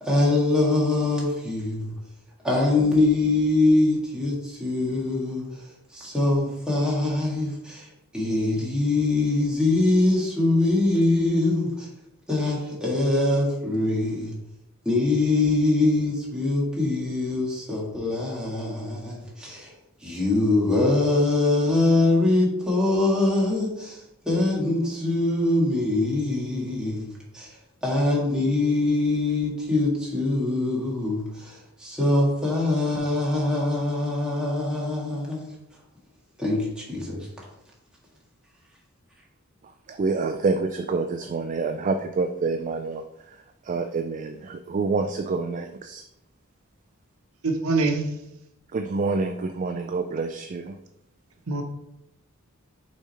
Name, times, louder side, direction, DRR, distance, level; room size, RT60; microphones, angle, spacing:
voice 1, 0.0-1.9 2.4-5.6 5.9-7.9 8.1-11.9 12.3-14.3 14.9-19.7 20.0-27.5 27.8-35.6 36.4-37.3, left 2 dB, 5° right, -5 dB, 1.9 m, -23 dB
voice 2, 39.9-43.0 43.6-46.0 48.7-50.8, right 4 dB, 35° right, 7 dB, 0.3 m, -27 dB
voice 3, 47.4-48.0 51.5-51.6, right 3 dB, 85° right, 4 dB, 0.9 m, -23 dB
6.3 x 3.7 x 4.2 m, 0.85 s
head